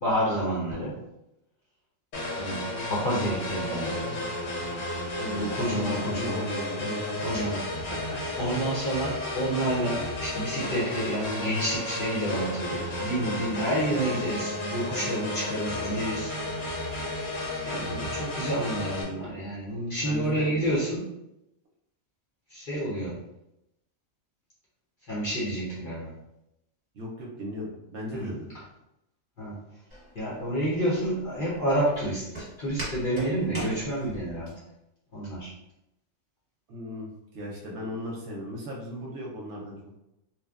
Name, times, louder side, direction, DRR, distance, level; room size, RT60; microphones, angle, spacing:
voice 1, 0.0-1.0 2.4-4.3 5.2-6.5 6.8-7.7 8.4-16.3 17.6-21.1 22.5-23.2 25.1-26.1 28.2-28.3 29.4-29.6 30.1-34.5 35.1-35.5, right 1 dB, 50° left, -7 dB, 0.7 m, -29 dB
sound 1, 2.1-19.0, left 1 dB, 70° left, 1.0 m, -33 dB
voice 2, 5.4-7.6 7.9-8.6 20.0-20.5 26.9-28.5 36.7-39.9, left 1 dB, 65° right, -2 dB, 0.8 m, -37 dB
Walk footsteps, 29.9-34.5, right 1 dB, 10° right, 1.0 m, -39 dB
2.9 x 2.1 x 2.3 m, 0.86 s
omnidirectional pair, 1.4 m